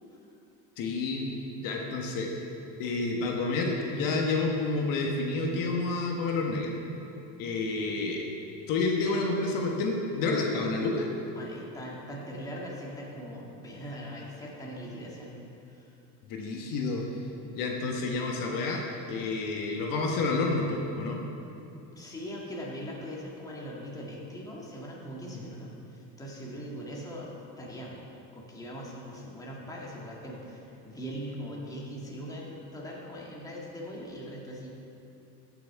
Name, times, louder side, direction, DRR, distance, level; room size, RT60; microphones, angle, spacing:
voice 1, 0.8-1.2 1.6-2.3 2.8-6.7 7.4-8.2 8.7-11.1 16.3-17.0 17.5-18.8 19.1-21.2 25.3-25.4, left 3 dB, 60° left, 0 dB, 1.3 m, -29 dB
voice 2, 11.4-15.3 15.7-15.9 22.0-28.0 28.3-34.7, equal, 10° left, -4 dB, 1.9 m, -41 dB
14.5 x 6.2 x 4.7 m, 2.8 s
cardioid pair, 135°, 37 cm